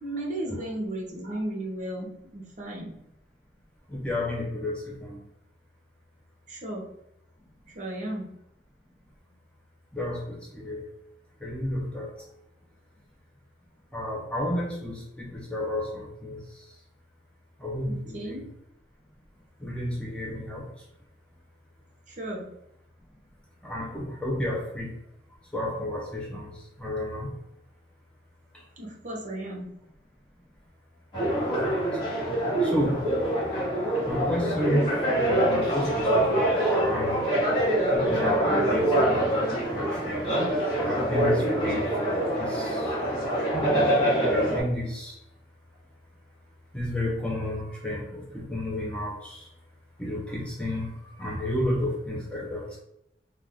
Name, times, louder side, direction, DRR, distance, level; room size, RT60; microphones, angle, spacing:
voice 1, 0.0-3.0 6.5-6.9 7.7-8.3 17.9-18.4 22.1-22.5 28.8-29.7, right 1 dB, 45° right, -2 dB, 0.8 m, -34 dB
voice 2, 3.9-5.2 9.9-10.9 11.4-12.1 13.9-16.6 17.6-18.4 19.6-20.7 23.6-25.0 25.5-27.4 28.5-28.6 31.6-31.9 32.6-33.0 33.9-37.3 37.9-40.3 40.8-43.0 44.3-45.2 46.7-49.5 50.0-52.7, left 1 dB, 5° left, -4 dB, 0.4 m, -32 dB
sound 1, 31.1-44.6, right 1 dB, 25° left, 1.1 m, -25 dB
2.4 x 2.2 x 3.4 m, 0.80 s
head